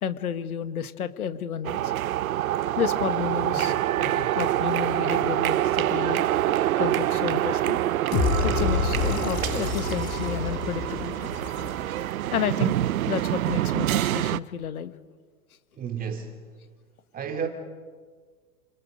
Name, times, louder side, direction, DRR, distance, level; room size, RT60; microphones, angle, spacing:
voice 1, 0.0-1.9 2.8-6.2 6.8-7.8 8.4-11.3 12.3-12.8 13.1-14.9, left 8 dB, 85° left, 1.8 m, -31 dB
sound 1, 1.6-14.4, right 13 dB, 70° right, 0.8 m, -26 dB
sound 2, 8.1-12.2, left 7 dB, 45° left, 4.1 m, -28 dB
voice 2, 15.8-16.4 17.1-17.5, right 7 dB, 20° right, 3.0 m, -31 dB
29.0 x 20.5 x 5.2 m
hypercardioid pair, 130°, 43 cm